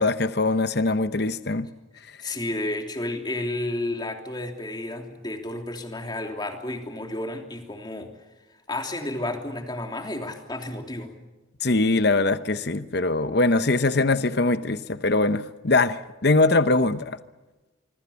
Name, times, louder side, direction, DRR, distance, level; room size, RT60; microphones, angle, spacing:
voice 1, 0.0-1.7 11.6-17.2, left 2 dB, 55° left, 12 dB, 0.9 m, -22 dB
voice 2, 2.2-8.1 8.7-11.1, left 1 dB, 20° left, 4 dB, 3.1 m, -31 dB
26.0 x 24.0 x 7.0 m, 1.1 s
head